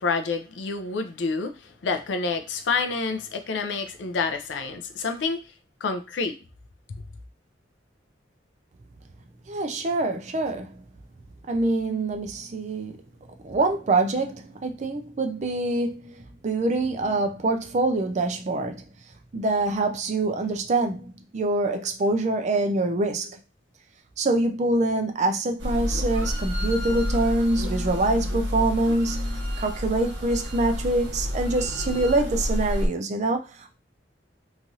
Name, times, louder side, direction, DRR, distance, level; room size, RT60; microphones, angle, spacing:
voice 1, 0.0-5.4 5.8-6.4 6.9-7.0, left 4 dB, 75° left, 0.4 m, -28 dB
voice 2, 9.5-10.8 11.5-12.9 13.4-18.8 19.3-23.3 24.2-33.8, right 2 dB, 40° right, 0.4 m, -25 dB
sound 1, 25.6-32.9, left 1 dB, 80° right, 0.7 m, -29 dB
3.1 x 2.4 x 2.7 m
head